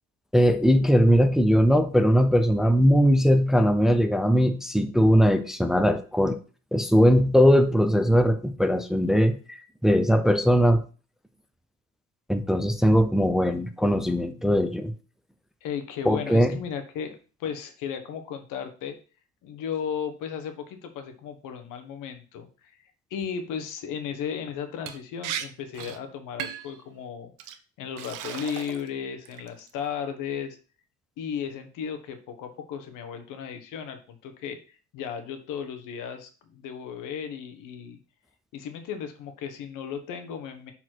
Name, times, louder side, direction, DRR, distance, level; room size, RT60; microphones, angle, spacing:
voice 1, 0.3-6.4 6.7-9.6 9.8-10.8 12.3-14.9 16.1-16.6, equal, ahead, 8 dB, 0.5 m, -20 dB
voice 2, 15.6-19.0 19.4-27.5 27.8-30.6 31.2-38.0 38.5-40.7, left 7 dB, 85° left, 7 dB, 1.2 m, -35 dB
Liquid, 24.9-25.0 25.2-25.4 25.7-26.0 26.4-26.7 27.4-27.5 28.0-28.9 29.2-29.7, right 10 dB, 80° right, 0.8 m, -35 dB
6.3 x 4.3 x 4.5 m, 0.37 s
cardioid pair, 120°, 31 cm